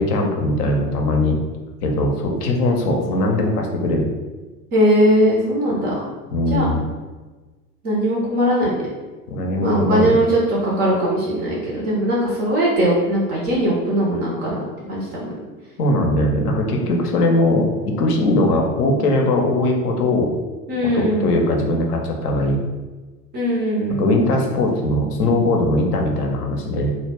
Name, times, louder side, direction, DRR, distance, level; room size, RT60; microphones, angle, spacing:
voice 1, 0.0-1.4 1.8-4.1 6.3-6.8 9.3-10.1 15.8-20.3 20.9-22.6 24.0-26.9, left 1 dB, 70° left, 1 dB, 0.6 m, -20 dB
voice 2, 4.7-5.9 6.5-6.7 7.8-8.8 9.6-14.6 14.9-15.3 20.7-21.4 23.3-24.1, equal, 25° right, -4 dB, 0.3 m, -19 dB
2.1 x 2.0 x 3.3 m, 1.3 s
figure-of-eight pair, 75°, 48 cm